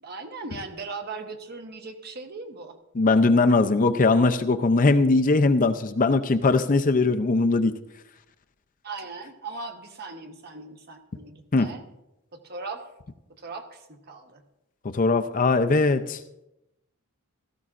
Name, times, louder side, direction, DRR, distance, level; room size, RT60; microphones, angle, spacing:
voice 1, 0.0-2.8 8.8-11.8 12.4-12.9 13.4-14.4, right 3 dB, 45° right, 5 dB, 1.1 m, -38 dB
voice 2, 3.0-7.7 11.5-11.7 14.9-16.2, left 3 dB, 35° left, 8 dB, 0.5 m, -20 dB
16.5 x 14.0 x 2.5 m, 0.90 s
head